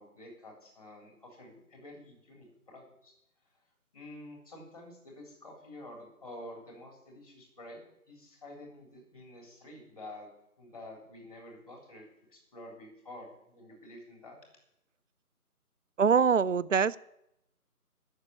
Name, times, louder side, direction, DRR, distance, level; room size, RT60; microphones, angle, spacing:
voice 1, 0.0-3.1 3.9-7.8 8.1-10.3 10.6-14.4, left 1 dB, 25° left, 1 dB, 3.8 m, -49 dB
voice 2, 16.0-17.0, right 6 dB, 60° right, 19 dB, 0.5 m, -24 dB
12.0 x 7.3 x 9.7 m, 0.81 s
figure-of-eight pair, 160°, 45 cm